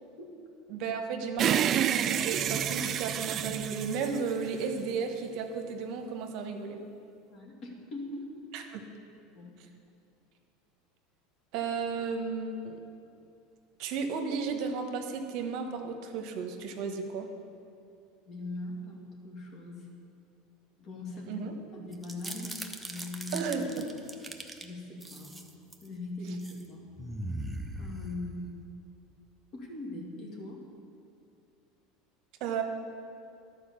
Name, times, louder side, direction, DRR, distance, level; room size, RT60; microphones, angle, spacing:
voice 1, 0.0-0.4 7.3-8.4 9.3-9.6 18.3-19.9 20.8-21.4 21.7-22.6 22.9-23.5 24.6-25.4 25.8-26.9 27.7-28.6 29.5-30.6, left 2 dB, 45° left, -1 dB, 2.1 m, -41 dB
voice 2, 0.7-6.8 8.5-8.8 11.5-12.8 13.8-17.3 21.3-21.5 23.3-23.8 32.4-32.6, right 5 dB, 60° right, 5 dB, 1.0 m, -34 dB
sound 1, 1.4-4.9, right 10 dB, 40° right, 0.3 m, -29 dB
sound 2, 21.9-24.6 25.0-25.9 26.3-26.6 27.0-28.6, right 1 dB, 5° right, 0.8 m, -40 dB
11.5 x 4.8 x 6.8 m, 2.5 s
supercardioid pair, 105°, 0 cm